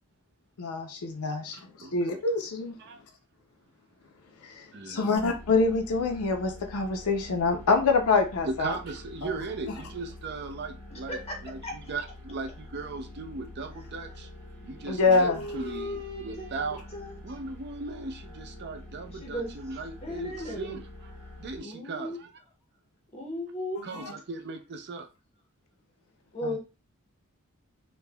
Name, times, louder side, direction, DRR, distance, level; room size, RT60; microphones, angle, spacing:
voice 1, 0.6-1.6 1.9-2.8 4.4-8.7 9.2-9.3 14.9-15.5 23.9-24.1 26.4-26.5, left 4 dB, 75° left, 0.5 m, -26 dB
voice 2, 1.8-2.2 2.8-3.0 4.7-5.2 8.4-14.3 14.6-21.1 21.4-22.3 23.8-25.1, right 3 dB, 50° right, 0.4 m, -38 dB
sound 1, 5.2-21.6, left 1 dB, 10° right, 1.2 m, -46 dB
voice 3, 10.9-11.4 11.6-11.7 15.2-17.2 19.1-19.5 20.0-20.8 21.6-22.2 23.1-23.8 26.3-26.6, left 1 dB, 30° left, 0.6 m, -36 dB
3.3 x 2.1 x 2.2 m
head